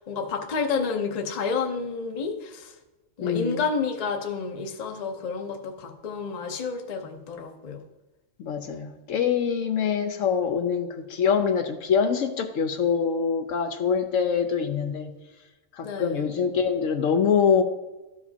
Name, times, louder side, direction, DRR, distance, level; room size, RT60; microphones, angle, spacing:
voice 1, 0.1-2.7 3.2-7.8 15.8-16.2, left 5 dB, 40° left, 5 dB, 0.7 m, -30 dB
voice 2, 3.2-3.6 8.4-15.1 15.8-17.6, left 6 dB, 70° left, 7 dB, 0.9 m, -24 dB
13.0 x 5.0 x 2.8 m, 1.1 s
omnidirectional pair, 1.4 m